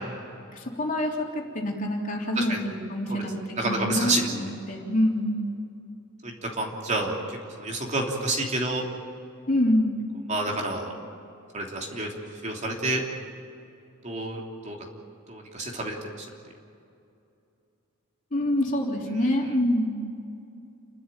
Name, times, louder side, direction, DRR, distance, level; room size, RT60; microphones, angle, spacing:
voice 1, 0.5-5.4 9.5-9.9 18.3-20.0, left 1 dB, 40° left, -1 dB, 3.3 m, -26 dB
voice 2, 3.6-4.3 6.2-8.8 10.3-10.9 11.5-13.0 14.0-14.8 15.3-16.3, right 2 dB, 35° right, 0 dB, 3.1 m, -29 dB
29.5 x 12.5 x 9.1 m, 2.6 s
head